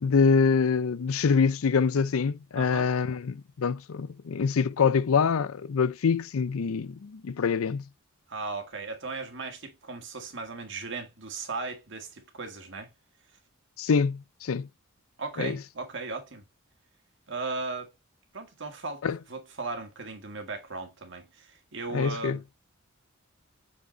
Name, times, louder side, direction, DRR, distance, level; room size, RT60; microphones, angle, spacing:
voice 1, 0.0-7.8 13.8-14.7 15.4-15.6 19.0-19.2 21.9-22.4, left 5 dB, 75° left, 0.5 m, -25 dB
voice 2, 2.5-2.9 8.3-12.9 15.2-16.4 17.3-17.9 18.3-22.4, right 3 dB, 55° right, 1.8 m, -37 dB
6.8 x 5.2 x 3.1 m
head